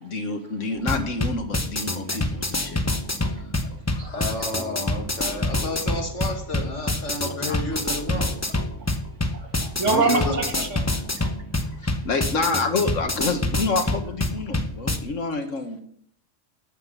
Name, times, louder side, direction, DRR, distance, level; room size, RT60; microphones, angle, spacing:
voice 1, 0.0-2.8 3.3-3.4 3.9-4.3 5.3-5.4 7.5-7.8 9.9-10.1 11.8-15.8, left 3 dB, 90° left, 6 dB, 1.8 m, -28 dB
sound 1, 0.8-15.0, left 1 dB, 15° left, 0.9 m, -27 dB
voice 2, 3.6-4.6 9.3-11.3, right 4 dB, 75° right, 3 dB, 2.2 m, -28 dB
voice 3, 4.1-8.3 10.0-10.6, left 2 dB, 70° left, 3 dB, 2.5 m, -31 dB
12.0 x 8.8 x 5.6 m, 0.64 s
omnidirectional pair, 1.3 m